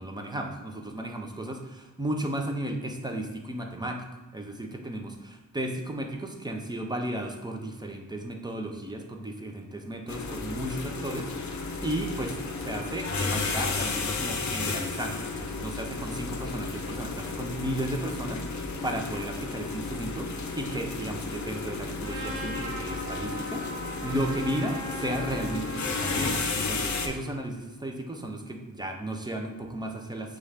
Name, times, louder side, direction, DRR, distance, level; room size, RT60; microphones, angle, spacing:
voice 1, 0.0-4.0 4.3-30.4, right 1 dB, 15° right, 2 dB, 0.4 m, -34 dB
sound 1, 10.1-27.1, left 4 dB, 60° left, 0.6 m, -33 dB
Trumpet, 22.0-26.3, right 1 dB, 55° right, 1.2 m, -39 dB
6.6 x 2.4 x 3.2 m, 1.2 s
wide cardioid pair, 145°, 33 cm